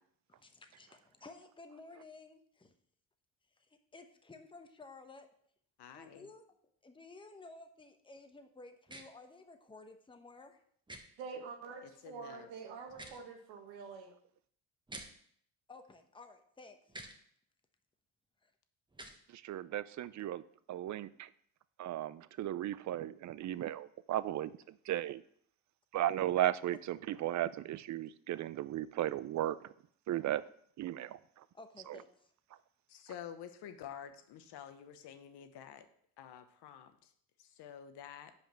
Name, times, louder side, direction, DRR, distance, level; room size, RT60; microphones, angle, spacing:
voice 1, 0.3-2.7 3.6-5.3 5.9-6.4 6.8-10.6 15.7-17.0 18.4-18.5 31.5-32.3, left 3 dB, 10° left, 6 dB, 0.9 m, -54 dB
voice 2, 5.8-6.3 11.8-12.5 32.9-35.9 36.2-37.1 37.4-38.3, left 9 dB, 70° left, 9 dB, 1.0 m, -49 dB
sound 1, 8.9-9.0 10.9-11.0 12.9-13.2 14.9-15.1 16.9-17.1 18.9-19.2, right 1 dB, 10° right, 1.1 m, -47 dB
voice 3, 11.2-14.1, right 5 dB, 90° right, 3 dB, 1.4 m, -46 dB
voice 4, 19.3-20.4 20.7-21.3 21.8-25.2 25.9-29.7 30.1-30.4 30.8-31.4 31.9-32.0, right 13 dB, 45° right, 17 dB, 0.4 m, -36 dB
5.3 x 5.0 x 6.1 m, 0.64 s
supercardioid pair, 80°, 42 cm